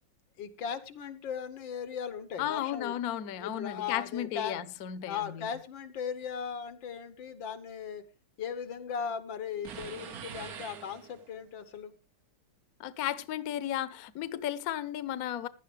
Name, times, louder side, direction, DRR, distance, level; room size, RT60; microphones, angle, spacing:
voice 1, 0.4-3.0 3.4-4.6 5.0-8.0 8.4-11.9, left 7 dB, 85° left, 1.8 m, -38 dB
voice 2, 2.4-5.5 12.8-15.5, left 11 dB, 60° left, 1.1 m, -34 dB
sound 1, 9.6-11.5, right 7 dB, 60° right, 1.4 m, -44 dB
16.0 x 11.5 x 3.3 m
omnidirectional pair, 2.0 m